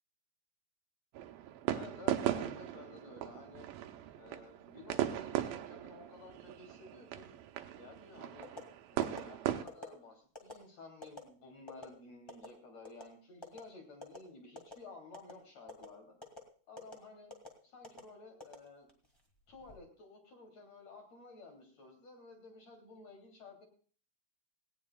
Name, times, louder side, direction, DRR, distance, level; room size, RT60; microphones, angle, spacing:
sound 1, 1.1-9.6, right 12 dB, 80° right, 2.4 m, -38 dB
voice 1, 1.7-3.7 4.2-7.3 7.8-8.5 8.9-16.2 16.7-17.3 17.6-18.9 19.5-23.6, left 3 dB, 45° left, 2 dB, 3.8 m, -53 dB
sound 2, 8.4-8.6 9.0-9.2 9.7-9.9 10.3-10.5 11.0-11.2 11.7-11.9 12.3-12.5 12.8-13.1 13.4-13.6 14.0-14.2 14.5-14.8 15.1-15.3 15.7-15.9 16.2-16.4 16.8-16.9 17.3-17.5 17.8-18.0 18.4-19.0 19.5-19.8, left 2 dB, 15° left, 1.0 m, -46 dB
18.5 x 17.0 x 2.3 m, 0.42 s
omnidirectional pair, 4.2 m